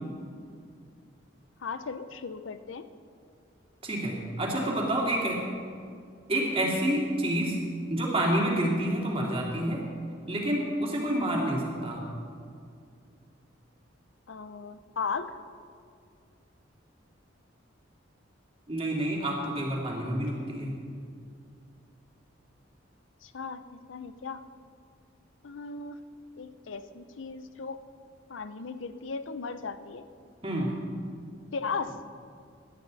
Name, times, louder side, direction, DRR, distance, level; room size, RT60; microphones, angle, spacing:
voice 1, 1.6-2.8 14.3-15.4 23.2-24.4 25.4-26.0 26.4-27.8 28.3-30.0 31.5-32.0, left 5 dB, 80° left, 11 dB, 0.6 m, -36 dB
voice 2, 3.8-5.4 6.3-7.6 7.9-9.8 10.3-12.0 18.7-20.7 30.4-30.7, right 1 dB, 30° right, -2 dB, 2.7 m, -28 dB
18.5 x 11.5 x 4.1 m, 2.3 s
head